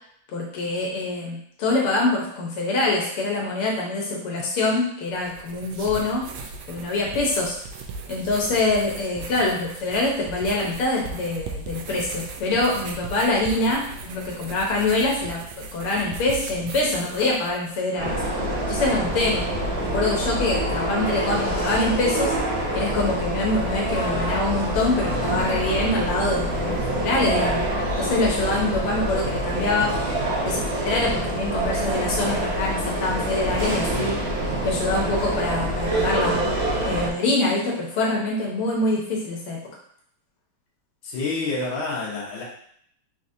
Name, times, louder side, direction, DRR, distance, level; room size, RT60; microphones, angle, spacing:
voice 1, 0.3-6.3 6.7-7.5 8.1-19.5 19.8-22.3 22.7-27.6 28.0-29.9 30.4-34.2 34.6-39.6, left 2 dB, 85° left, -2 dB, 1.8 m, -25 dB
sound 1, 5.1-17.8, right 4 dB, 80° right, 1.4 m, -38 dB
sound 2, 18.0-37.1, right 1 dB, 55° right, 0.7 m, -26 dB
voice 2, 41.0-42.4, left 3 dB, 65° left, -4 dB, 1.8 m, -28 dB
4.2 x 4.0 x 2.6 m, 0.66 s
omnidirectional pair, 2.4 m